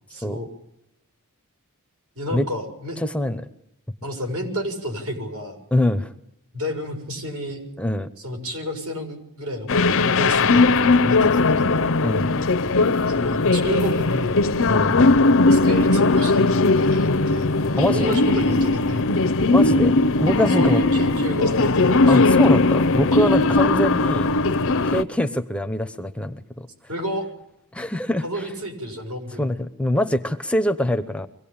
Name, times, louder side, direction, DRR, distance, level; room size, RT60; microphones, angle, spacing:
voice 1, 0.1-0.5 2.1-3.0 4.0-5.6 6.5-7.6 8.2-11.9 13.1-14.5 15.5-19.1 20.5-22.3 26.9-27.3 28.2-29.6, equal, 70° right, 4 dB, 6.7 m, -30 dB
voice 2, 3.0-3.5 5.7-6.1 7.8-8.1 12.0-12.3 14.7-15.0 17.8-18.2 19.5-20.8 22.1-24.4 24.8-26.7 27.7-28.4 29.4-31.3, left 1 dB, 5° left, 10 dB, 0.8 m, -24 dB
sound 1, 9.7-25.0, left 3 dB, 65° left, 0.8 m, -18 dB
24.0 x 17.5 x 8.8 m, 0.82 s
head